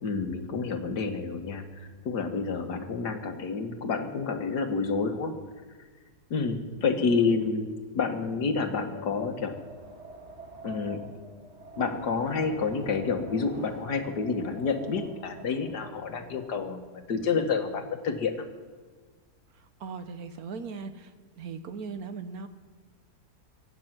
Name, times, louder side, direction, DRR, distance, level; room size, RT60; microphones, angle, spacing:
voice 1, 0.0-5.3 6.3-7.7 7.9-9.5 10.6-11.0 11.8-18.4, left 5 dB, 70° left, 6 dB, 1.9 m, -29 dB
voice 2, 6.8-7.4 19.8-21.1 21.4-22.5, right 5 dB, 65° right, 10 dB, 1.3 m, -39 dB
Wind, 8.5-16.9, right 2 dB, 40° right, 2.0 m, -46 dB
24.0 x 8.9 x 6.0 m, 1.5 s
omnidirectional pair, 1.8 m